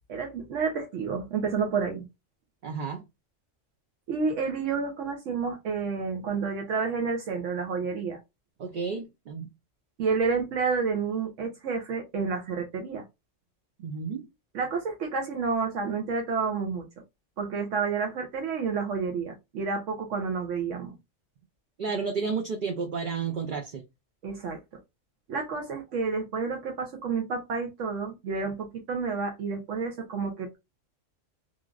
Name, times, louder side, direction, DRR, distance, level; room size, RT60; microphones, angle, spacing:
voice 1, 0.1-2.1 4.1-8.2 10.0-13.0 14.5-16.8 17.4-21.0 24.2-24.6 25.3-30.6, right 5 dB, 80° right, 1.0 m, -30 dB
voice 2, 2.6-3.0 8.6-9.5 13.8-14.3 21.8-23.8, right 5 dB, 55° right, 0.6 m, -31 dB
3.1 x 2.4 x 2.3 m
omnidirectional pair, 1.3 m